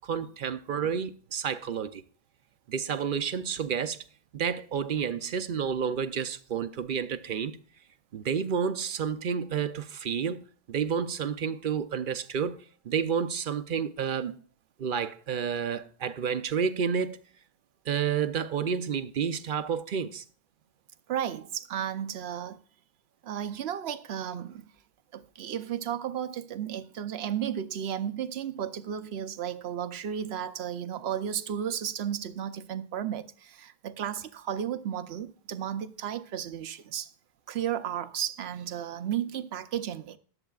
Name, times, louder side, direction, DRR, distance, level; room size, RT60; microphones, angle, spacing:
voice 1, 0.0-2.0 2.7-4.0 4.3-7.6 8.1-10.4 10.7-12.6 12.8-14.4 14.8-17.2 17.9-20.2, right 7 dB, 60° right, 0.8 m, -30 dB
voice 2, 21.1-22.6 23.2-24.7 25.1-37.1 37.5-40.2, right 9 dB, 85° right, 0.9 m, -33 dB
21.5 x 8.0 x 2.4 m
omnidirectional pair, 1.0 m